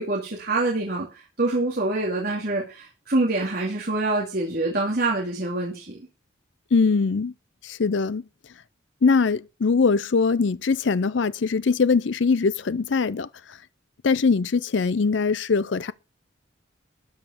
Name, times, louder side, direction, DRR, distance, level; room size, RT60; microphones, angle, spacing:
voice 1, 0.0-6.0, right 2 dB, 50° right, 2.4 m, -26 dB
voice 2, 6.7-7.3 7.6-8.2 9.0-13.6 14.0-15.9, left 4 dB, 70° left, 0.5 m, -22 dB
13.0 x 5.2 x 7.1 m
head